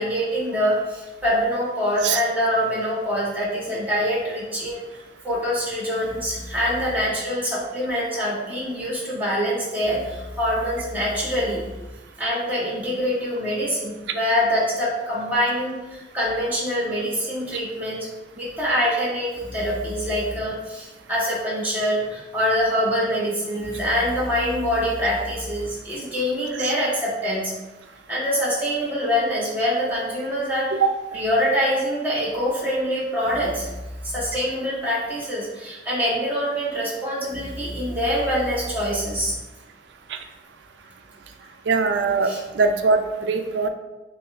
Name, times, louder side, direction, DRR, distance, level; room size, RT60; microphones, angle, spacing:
voice 1, 0.0-11.6 12.2-18.1 18.3-27.5 28.1-30.8 31.1-33.7 34.0-39.3 42.2-42.4, equal, 10° right, -6 dB, 1.2 m, -25 dB
voice 2, 41.7-43.7, right 4 dB, 85° right, 6 dB, 0.4 m, -21 dB
6.6 x 2.3 x 2.5 m, 1.1 s
head